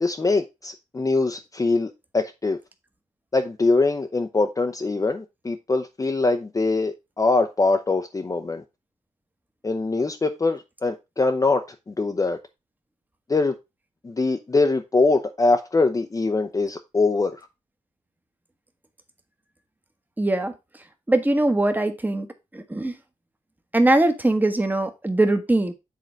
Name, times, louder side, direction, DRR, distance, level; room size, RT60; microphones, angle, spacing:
voice 1, 0.0-2.6 3.3-8.6 9.6-12.4 13.3-13.6 14.0-17.4, left 3 dB, 25° left, 0.7 m, -23 dB
voice 2, 20.2-20.5 21.1-22.3 22.5-23.0 23.7-25.7, right 2 dB, 15° right, 1.2 m, -21 dB
7.6 x 3.9 x 4.4 m
cardioid pair, 85°, 13 cm